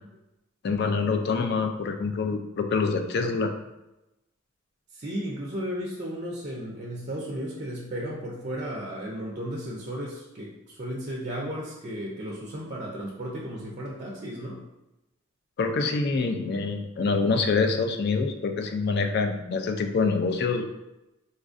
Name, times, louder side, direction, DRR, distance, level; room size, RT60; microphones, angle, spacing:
voice 1, 0.6-3.5 15.6-20.7, left 4 dB, 50° left, 6 dB, 0.3 m, -26 dB
voice 2, 4.9-14.6, equal, 35° right, -3 dB, 0.4 m, -34 dB
4.0 x 2.5 x 2.5 m, 0.94 s
head